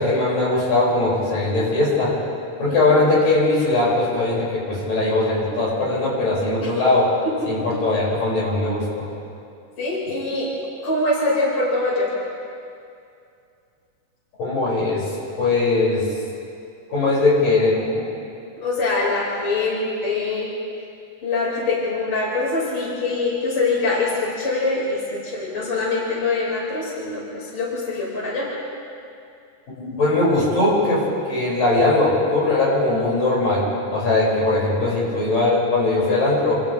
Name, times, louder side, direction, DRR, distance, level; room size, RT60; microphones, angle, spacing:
voice 1, 0.0-2.2 2.6-7.1 7.5-9.1 14.4-15.1 15.4-16.1 16.9-18.1 29.8-33.7 33.9-36.6, left 2 dB, 70° left, -6 dB, 7.5 m, -20 dB
voice 2, 9.8-10.5 10.8-12.1 18.6-20.5 21.2-28.5, left 3 dB, 40° left, -6 dB, 5.6 m, -24 dB
29.0 x 27.5 x 3.3 m, 2.5 s
omnidirectional pair, 4.0 m